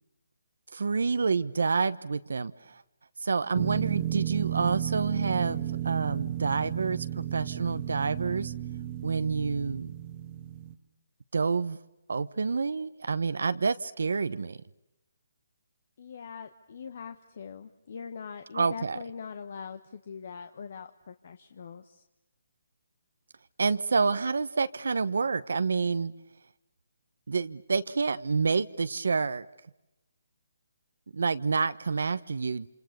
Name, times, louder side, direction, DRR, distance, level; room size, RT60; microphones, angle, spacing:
voice 1, 0.7-2.8 3.2-8.5 9.0-9.9 11.3-11.8 12.1-14.6 18.5-19.0 23.6-26.1 27.3-29.4 31.1-32.7, right 4 dB, 75° right, 12 dB, 1.1 m, -28 dB
sound 1, 3.5-10.7, right 12 dB, 25° right, 1.3 m, -33 dB
voice 2, 16.0-22.0, left 6 dB, 50° left, 9 dB, 1.5 m, -42 dB
28.0 x 27.5 x 6.9 m, 0.92 s
hypercardioid pair, 165°, 0 cm